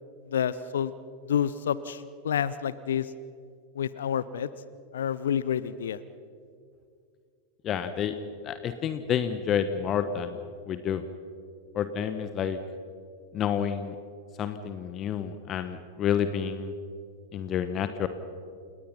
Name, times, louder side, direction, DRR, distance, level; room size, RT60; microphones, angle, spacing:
voice 1, 0.3-0.9 1.2-3.1 3.7-4.5 4.9-6.0, left 9 dB, 65° left, 18 dB, 0.7 m, -29 dB
voice 2, 7.6-8.1 8.4-10.4 10.7-11.0 11.7-12.6 13.3-13.9 14.4-16.7 17.3-18.1, left 8 dB, 30° left, 10 dB, 1.1 m, -29 dB
29.5 x 18.5 x 5.7 m, 2.3 s
figure-of-eight pair, 90°, 0 cm